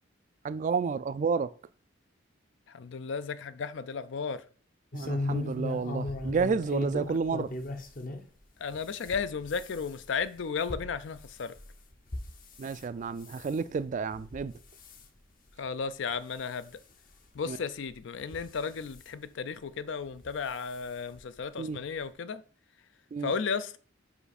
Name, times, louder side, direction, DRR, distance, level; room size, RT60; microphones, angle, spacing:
voice 1, 0.4-1.5 4.9-7.5 12.6-14.5 17.5-17.6 21.6-21.8 23.1-23.3, right 5 dB, 40° right, 0.3 m, -30 dB
voice 2, 2.7-4.4 8.6-11.5 15.6-16.7 17.3-22.4 23.2-23.8, left 5 dB, 65° left, 0.4 m, -34 dB
sound 1, 4.9-8.3 8.7-12.8 13.2-13.6 14.1-14.5 14.7-15.0 15.7-15.8 16.1-16.2 17.3-17.4 18.2-19.0 20.2-20.4 20.7-20.8 21.1-21.2, left 2 dB, 45° left, 0.8 m, -37 dB
5.8 x 5.0 x 4.1 m
head